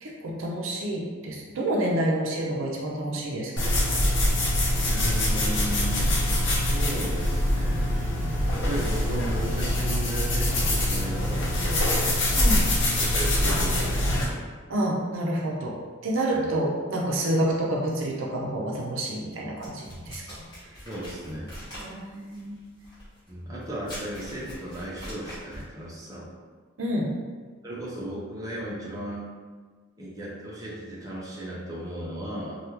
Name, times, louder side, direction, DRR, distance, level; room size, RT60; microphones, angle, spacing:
voice 1, 0.0-3.7 12.4-12.7 14.7-15.8 16.0-20.4 21.8-22.6 26.8-27.1, right 1 dB, 85° right, -1 dB, 0.5 m, -28 dB
sound 1, 3.6-14.2, left 1 dB, 65° left, 0.7 m, -24 dB
voice 2, 4.8-6.1 6.5-8.0 8.5-12.2 13.0-14.4 16.3-16.5 20.8-21.5 23.3-26.3 27.6-29.3 30.0-32.6, right 1 dB, 15° right, -7 dB, 0.6 m, -35 dB
sound 2, 19.6-25.7, equal, 20° left, 1.4 m, -43 dB
3.3 x 2.3 x 2.8 m, 1.5 s
head